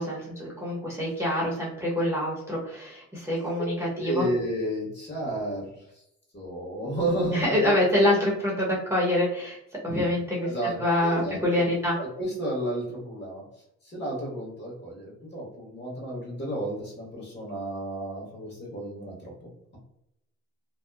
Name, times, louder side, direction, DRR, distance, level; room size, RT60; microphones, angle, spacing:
voice 1, 0.0-4.3 7.3-9.6 9.8-10.5 10.8-12.0, left 1 dB, 10° right, -5 dB, 0.8 m, -26 dB
voice 2, 4.0-5.8 6.3-7.7 10.4-11.4 11.9-13.4 13.8-19.3, right 1 dB, 35° left, -3 dB, 1.3 m, -31 dB
2.8 x 2.2 x 2.3 m, 0.81 s
cardioid pair, 90°, 30 cm